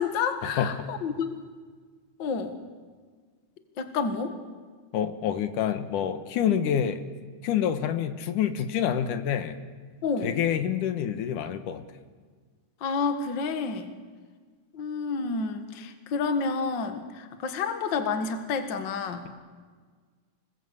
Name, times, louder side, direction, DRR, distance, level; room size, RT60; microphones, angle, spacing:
voice 1, 0.0-1.4 2.2-2.6 3.8-4.3 10.0-10.4 12.8-13.9 14.7-19.3, left 5 dB, 45° left, 8 dB, 2.0 m, -29 dB
voice 2, 4.9-7.0 7.4-9.6 10.2-11.8, left 9 dB, 85° left, 10 dB, 2.8 m, -27 dB
27.5 x 19.5 x 8.2 m, 1.5 s
omnidirectional pair, 3.5 m